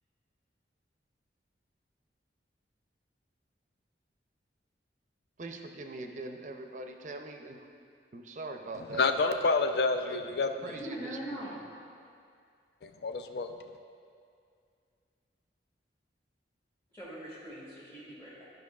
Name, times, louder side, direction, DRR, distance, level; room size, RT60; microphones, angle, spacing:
voice 1, 5.4-7.6 8.1-9.1 10.1-11.6, right 2 dB, 45° right, 5 dB, 0.4 m, -42 dB
voice 2, 9.0-10.5 12.8-13.5, left 3 dB, 65° left, 6 dB, 0.4 m, -28 dB
voice 3, 10.8-11.5 16.9-18.4, right 1 dB, 15° left, -9 dB, 1.1 m, -41 dB
11.5 x 5.2 x 2.3 m, 2.3 s
head